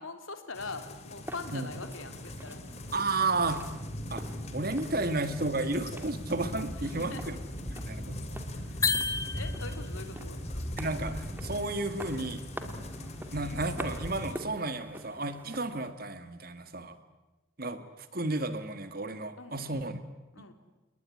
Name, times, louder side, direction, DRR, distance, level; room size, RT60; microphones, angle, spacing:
voice 1, 0.0-2.6 6.7-7.2 8.5-9.0 9.3-10.4 12.6-12.8 19.4-19.9 20.3-20.5, left 3 dB, 90° left, 7 dB, 3.6 m, -43 dB
sound 1, 0.5-14.4, left 1 dB, 35° left, 2.7 m, -40 dB
sound 2, 1.2-15.9, right 1 dB, 10° right, 2.4 m, -47 dB
voice 2, 2.9-3.6 4.1-4.3 4.5-7.4 7.7-8.4 10.8-12.5 13.3-17.0 17.6-20.0, right 2 dB, 45° right, 10 dB, 2.1 m, -32 dB
sound 3, 8.8-10.0, left 4 dB, 15° left, 1.4 m, -30 dB
29.0 x 20.5 x 9.9 m, 1.0 s
head